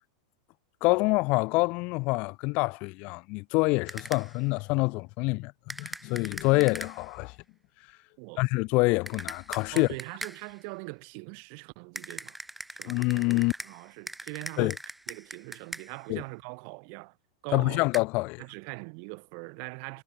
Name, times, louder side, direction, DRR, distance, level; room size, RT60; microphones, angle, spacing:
voice 1, 0.8-7.3 8.4-9.9 12.8-13.5 14.6-14.7 16.1-16.2 17.5-18.4, left 26 dB, 40° left, 0.5 m, -26 dB
sound 1, 3.9-4.4 5.7-7.2 9.1-10.6 12.0-16.1 17.9-18.0, right 1 dB, 5° right, 1.0 m, -41 dB
voice 2, 9.7-12.4 12.7-13.3 13.6-14.8 15.1-17.2 17.4-17.8 18.4-20.0, right 40 dB or more, 45° right, 3.4 m, -42 dB
supercardioid pair, 160°, 3 cm